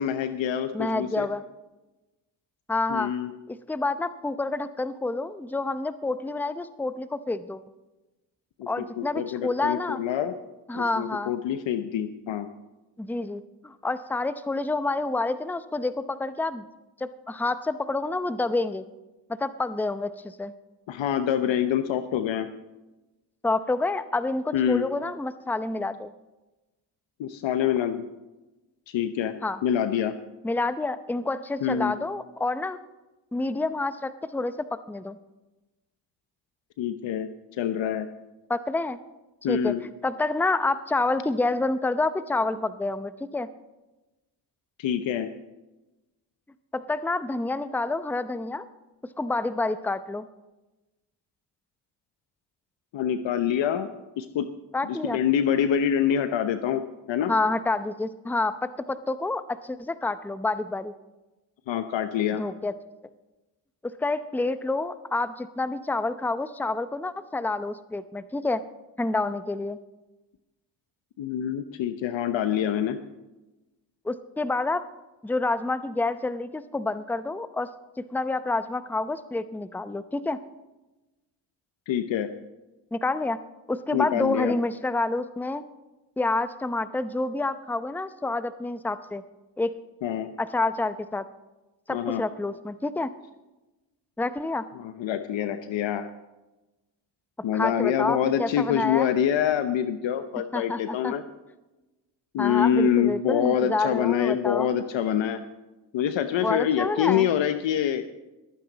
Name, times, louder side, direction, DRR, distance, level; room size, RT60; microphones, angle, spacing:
voice 1, 0.0-1.3 2.9-3.3 8.6-8.7 9.0-10.3 10.7-12.5 20.9-22.5 24.5-24.9 27.2-28.0 28.9-29.3 29.6-30.1 31.6-31.9 36.8-37.3 37.6-38.1 39.4-39.8 44.8-45.3 52.9-53.9 54.2-54.5 54.8-56.8 57.1-57.3 61.7-62.4 71.2-73.0 81.9-82.3 83.9-84.5 90.0-90.3 91.9-92.2 94.7-96.1 97.4-101.2 102.3-105.4 105.9-108.0, left 9 dB, 70° left, 9 dB, 0.9 m, -26 dB
voice 2, 0.7-1.4 2.7-3.1 3.5-7.6 8.7-10.0 10.7-11.3 13.0-16.7 17.0-18.9 19.4-20.5 23.4-26.1 29.4-29.6 30.4-32.8 33.3-35.2 38.5-39.0 39.5-39.7 40.0-43.5 46.7-48.7 49.2-50.3 54.7-55.2 57.3-60.9 62.4-62.7 63.8-68.6 69.0-69.8 74.0-74.8 75.2-77.7 78.0-80.4 82.9-83.4 83.7-85.6 86.2-89.2 89.6-89.7 90.4-91.2 91.9-93.1 94.2-94.6 97.5-99.1 100.5-101.1 102.4-104.7 106.4-107.3, left 2 dB, 5° left, 12 dB, 0.7 m, -28 dB
21.5 x 9.4 x 4.0 m, 1.1 s
cardioid pair, 70°, 46 cm